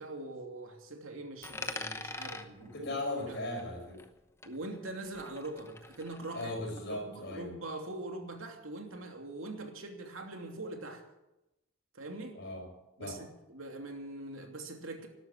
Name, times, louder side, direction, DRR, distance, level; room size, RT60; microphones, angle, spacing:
voice 1, 0.0-2.8 3.3-3.4 4.4-6.5 6.9-11.0 11.9-12.4 13.0-15.1, right 2 dB, 80° right, 3 dB, 2.9 m, -43 dB
Coin (dropping), 1.4-4.2 4.4-6.4, left 3 dB, 15° left, 0.9 m, -44 dB
voice 2, 2.6-4.0 6.3-7.5 12.3-12.7 13.0-13.2, left 1 dB, 55° left, 2 dB, 5.7 m, -38 dB
12.5 x 12.5 x 8.6 m, 0.93 s
head